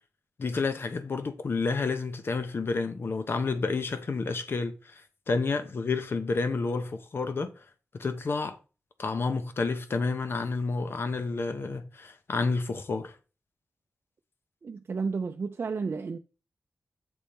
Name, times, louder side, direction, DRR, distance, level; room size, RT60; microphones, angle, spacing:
voice 1, 0.4-5.0 5.3-7.5 7.9-8.6 9.0-13.1, left 4 dB, 55° left, 0.9 m, -30 dB
voice 2, 14.6-16.2, right 4 dB, 55° right, 0.5 m, -32 dB
7.9 x 3.5 x 4.2 m
wide cardioid pair, 110°, 5 cm